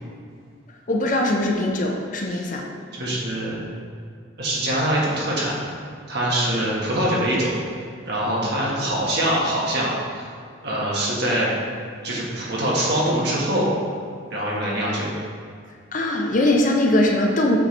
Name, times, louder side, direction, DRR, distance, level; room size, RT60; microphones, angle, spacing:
voice 1, 0.9-2.6 15.9-17.6, left 1 dB, 40° left, 1 dB, 0.6 m, -21 dB
voice 2, 2.9-3.6 4.4-5.5 6.1-7.5 8.0-10.3 10.6-11.5 12.0-13.7 14.3-15.1, right 1 dB, 55° right, -5 dB, 1.5 m, -23 dB
7.6 x 4.5 x 3.3 m, 2.2 s
head